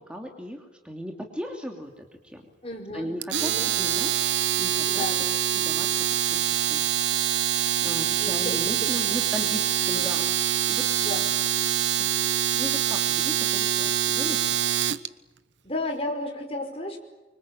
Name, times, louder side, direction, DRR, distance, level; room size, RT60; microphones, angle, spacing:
voice 1, 0.0-2.4 2.9-5.0 5.5-6.0 6.3-10.4 10.7-10.8 12.0-12.2 12.6-14.6, equal, 5° right, 2 dB, 2.8 m, -37 dB
voice 2, 2.6-3.1 3.4-3.7 4.9-5.4 8.2-8.7 9.1-9.2 9.9-10.1 11.0-11.3 15.6-17.0, left 1 dB, 30° left, 3 dB, 5.3 m, -33 dB
Domestic sounds home sounds, 3.2-15.1, right 11 dB, 90° right, 1.1 m, -25 dB
25.5 x 25.0 x 9.0 m, 1.1 s
head